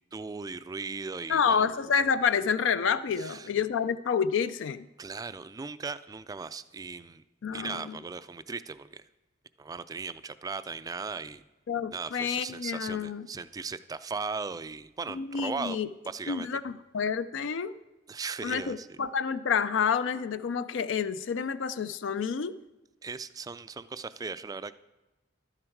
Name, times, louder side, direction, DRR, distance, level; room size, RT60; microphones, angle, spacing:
voice 1, 0.1-1.7 3.2-3.5 5.0-7.2 7.5-9.0 9.6-11.4 11.9-15.8 16.0-16.5 18.1-19.0 23.0-24.7, right 4 dB, 20° right, 14 dB, 0.3 m, -38 dB
voice 2, 1.3-4.9 7.4-8.0 11.7-13.3 15.1-15.9 16.3-17.8 18.4-22.5, left 6 dB, 75° left, 12 dB, 0.4 m, -29 dB
12.0 x 9.9 x 4.6 m, 1.0 s
head